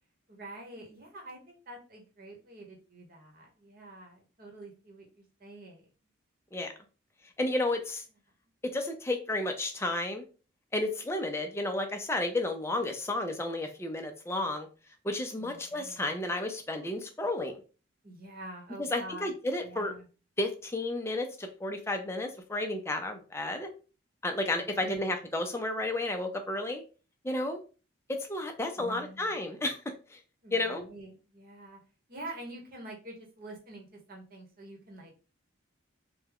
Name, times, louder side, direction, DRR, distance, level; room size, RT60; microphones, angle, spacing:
voice 1, 0.3-5.9 15.4-16.0 18.0-19.3 19.6-20.1 24.6-25.1 28.8-29.4 30.4-31.8 32.1-35.1, right 2 dB, 45° right, 1 dB, 1.0 m, -46 dB
voice 2, 7.4-8.0 8.6-10.2 10.7-14.7 15.0-17.6 18.8-19.9 20.4-23.7 24.2-26.8 27.2-27.6 28.1-29.8 30.1-30.2 30.5-30.8, left 2 dB, 10° left, 4 dB, 0.4 m, -32 dB
3.4 x 2.2 x 3.5 m, 0.35 s
head